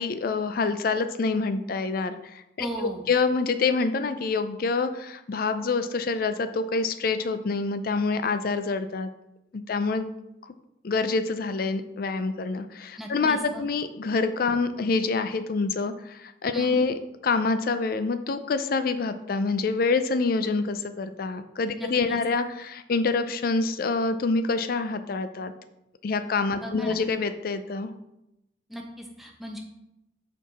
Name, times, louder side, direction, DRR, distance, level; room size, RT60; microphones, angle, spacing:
voice 1, 0.0-2.7 3.1-9.1 9.5-10.1 10.8-16.9 17.2-25.5 26.0-27.9, left 4 dB, 50° left, 10 dB, 0.4 m, -26 dB
voice 2, 2.6-3.1 13.0-13.6 16.5-16.8 21.7-22.2 26.6-27.0 28.7-29.6, equal, ahead, 1 dB, 0.8 m, -36 dB
5.9 x 4.6 x 4.1 m, 0.88 s
head